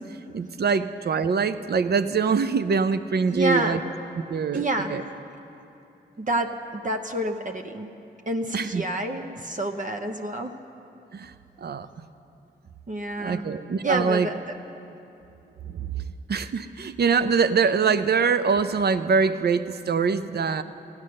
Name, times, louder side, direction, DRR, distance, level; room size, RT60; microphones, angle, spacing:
voice 1, 0.3-3.8 4.3-5.0 8.5-8.8 11.1-11.3 11.6-11.9 13.2-14.3 15.7-15.9 16.3-20.6, right 5 dB, 60° right, 12 dB, 0.6 m, -24 dB
voice 2, 3.3-3.8 4.5-5.0 6.2-7.9 8.3-10.5 12.9-13.4 13.8-14.6, right 1 dB, 45° right, 4 dB, 0.9 m, -28 dB
15.5 x 9.8 x 6.5 m, 2.8 s
cardioid pair, 45°, 19 cm